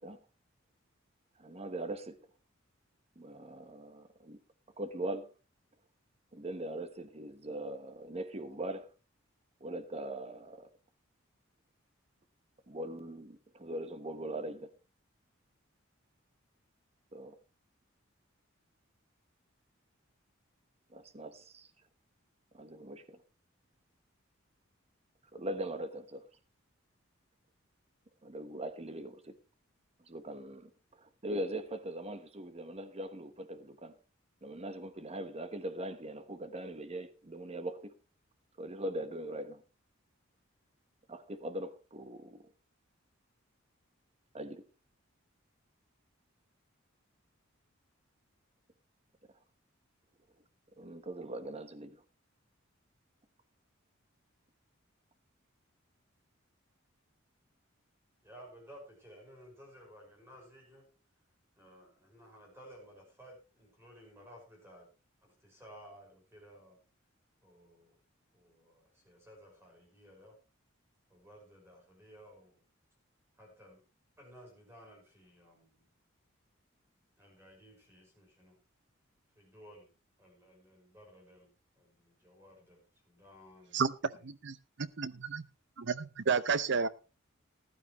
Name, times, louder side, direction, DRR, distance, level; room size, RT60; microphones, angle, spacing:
voice 1, 1.4-2.2 3.2-4.4 4.8-5.3 6.3-8.9 9.6-10.7 12.7-14.7 17.1-17.4 20.9-21.7 22.5-23.2 25.3-26.2 28.2-29.3 30.1-34.0 34.4-37.9 38.6-39.6 41.1-42.5 44.3-44.6 50.8-52.0, right 1 dB, 30° right, 1.1 m, -41 dB
voice 2, 58.2-60.8 61.6-64.9 65.2-66.8 67.4-68.0 68.3-70.4 71.1-72.6 73.4-73.8 74.2-75.9 77.2-78.6 79.4-79.9 80.2-82.8 83.1-84.2, equal, 10° right, 5.6 m, -56 dB
voice 3, 83.7-85.4 85.8-86.9, right 5 dB, 60° right, 0.7 m, -32 dB
14.5 x 12.0 x 3.1 m
head